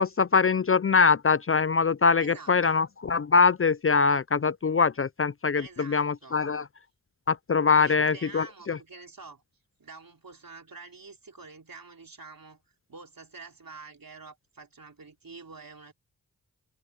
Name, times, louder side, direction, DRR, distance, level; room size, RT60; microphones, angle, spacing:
voice 1, 0.0-6.7 7.3-8.8, left 5 dB, 35° left, 0.5 m, -23 dB
voice 2, 2.2-2.8 5.6-6.4 7.7-9.4 9.8-12.6 12.9-15.9, right 4 dB, 65° right, 4.2 m, -47 dB
cardioid pair, 40°, 37 cm